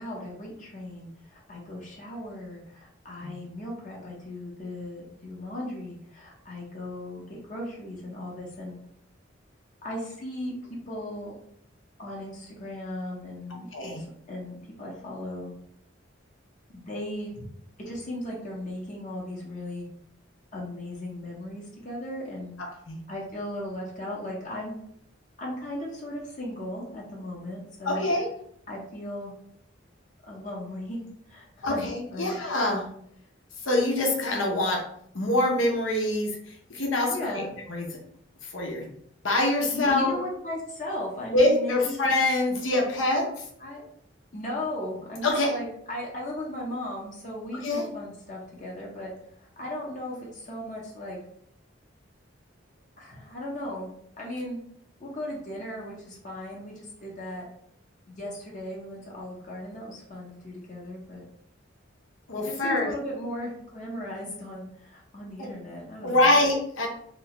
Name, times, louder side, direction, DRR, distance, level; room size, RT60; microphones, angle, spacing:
voice 1, 0.0-8.8 9.8-10.5 10.9-11.3 12.0-15.5 16.7-17.4 17.8-19.9 20.5-22.6 23.1-24.8 25.4-28.0 28.7-29.3 30.2-31.0 31.3-32.3 37.1-37.5 39.7-42.0 43.6-43.8 44.3-49.1 49.6-51.2 53.0-53.9 54.2-54.6 55.0-57.5 58.1-61.2 62.4-66.4, left 1 dB, 40° left, -3 dB, 0.8 m, -37 dB
voice 2, 22.6-23.0 27.8-28.3 31.6-32.9 33.6-34.8 35.1-36.4 36.7-37.4 37.7-37.9 38.5-38.9 39.2-40.2 41.3-43.3 45.2-45.5 47.5-47.8 62.3-62.9 65.4-65.5 66.0-66.9, left 2 dB, 80° left, 0 dB, 0.8 m, -24 dB
3.3 x 3.0 x 2.9 m, 0.69 s
head